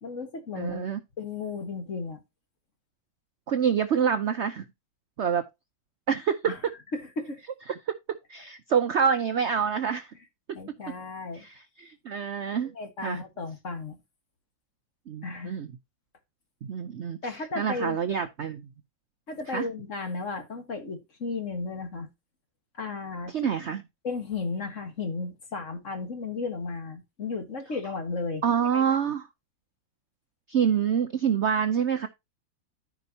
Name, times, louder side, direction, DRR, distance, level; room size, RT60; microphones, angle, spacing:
voice 1, 0.0-0.9 1.2-2.2 6.5-6.6 6.9-7.4 10.5-11.5 12.7-14.0 15.2-15.6 17.2-18.0 19.3-22.1 22.7-23.5 24.0-28.4 28.7-28.8, left 4 dB, 40° left, 1.7 m, -34 dB
voice 2, 0.6-1.0 3.5-4.6 5.2-5.5 6.1-6.5 7.7-10.1 10.7-10.8 11.3-12.7 13.0-13.2 15.1-15.7 16.6-18.7 19.5-19.7 23.3-23.8 28.4-29.3 30.5-32.1, right 7 dB, 80° right, 0.6 m, -27 dB
14.0 x 5.0 x 2.8 m
omnidirectional pair, 2.1 m